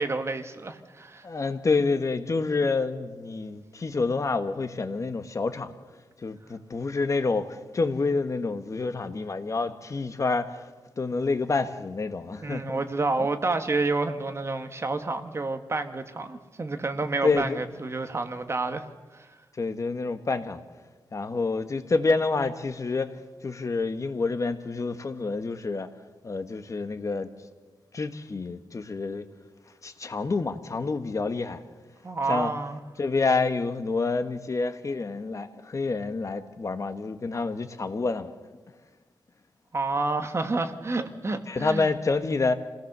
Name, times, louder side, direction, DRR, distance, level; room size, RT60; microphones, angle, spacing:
voice 1, 0.0-1.3 12.4-19.3 32.0-32.8 39.7-41.9, right 3 dB, 30° right, 1.5 m, -29 dB
voice 2, 1.2-5.7 6.2-10.6 11.0-12.8 17.2-17.6 19.6-20.6 21.1-23.1 23.4-25.9 26.2-27.3 27.9-29.3 29.8-31.6 32.3-32.5 33.0-38.3 41.5-42.5, left 3 dB, 40° left, 1.3 m, -28 dB
26.5 x 17.5 x 6.8 m
wide cardioid pair, 135°, 8 cm